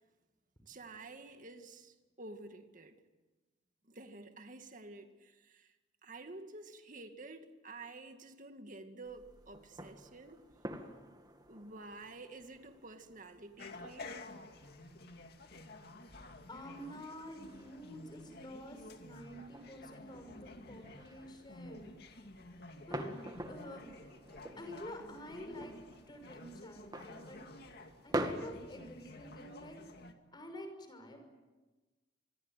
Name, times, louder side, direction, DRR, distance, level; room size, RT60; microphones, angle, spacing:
voice 1, 0.7-3.0 3.9-5.7 6.0-10.4 11.5-14.2 16.3-16.5 19.4-19.5, right 2 dB, 45° right, 2.2 m, -50 dB
sound 1, 9.0-28.3, right 1 dB, 20° right, 2.2 m, -47 dB
sound 2, 13.6-30.1, left 2 dB, 55° left, 2.3 m, -52 dB
voice 2, 16.5-21.9 22.9-23.1 23.5-23.9 24.6-25.7 26.1-27.4 28.0-29.8 30.3-31.2, equal, 25° left, 5.9 m, -48 dB
26.5 x 22.0 x 9.2 m
head